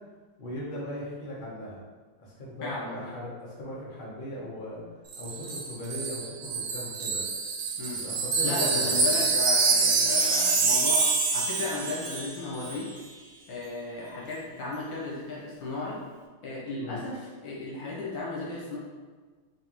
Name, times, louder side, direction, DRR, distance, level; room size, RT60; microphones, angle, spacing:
voice 1, 0.4-1.8 2.2-4.8 5.2-7.2 7.9-9.1 16.8-17.1, equal, 45° left, -6 dB, 0.6 m, -38 dB
voice 2, 2.6-3.0 7.8-8.0 8.4-12.9 13.5-16.0 16.4-18.8, left 3 dB, 65° left, -5 dB, 1.6 m, -35 dB
Wind chime, 5.1-12.4 12.6-12.8, right 4 dB, 75° right, 1.5 m, -26 dB
4.0 x 3.7 x 2.9 m, 1.4 s
omnidirectional pair, 2.4 m